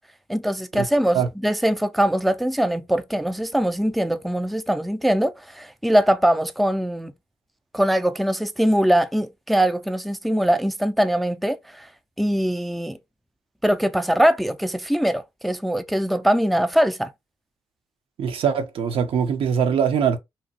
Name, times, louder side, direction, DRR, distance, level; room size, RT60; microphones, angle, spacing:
voice 1, 0.3-7.1 7.7-11.9 12.2-13.0 13.6-17.1, equal, ahead, 0.4 m, -22 dB
voice 2, 18.2-20.2, right 7 dB, 75° right, 0.7 m, -22 dB
2.8 x 2.3 x 2.6 m
cardioid pair, 65°, 9 cm